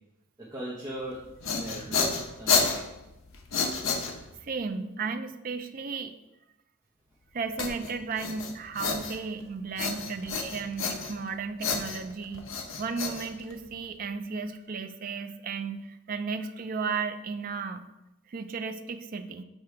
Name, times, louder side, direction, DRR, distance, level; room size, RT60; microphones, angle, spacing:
voice 1, 0.4-1.2 1.5-2.8, right 1 dB, 15° right, -7 dB, 0.8 m, -38 dB
sound 1, 1.1-4.5 7.6-9.4 9.8-11.3 11.6-13.9, left 5 dB, 65° left, 0.8 m, -30 dB
voice 2, 4.4-6.1 7.3-12.4 12.8-17.9 18.3-19.4, right 5 dB, 40° right, 8 dB, 0.4 m, -34 dB
6.6 x 3.4 x 4.5 m, 0.95 s
head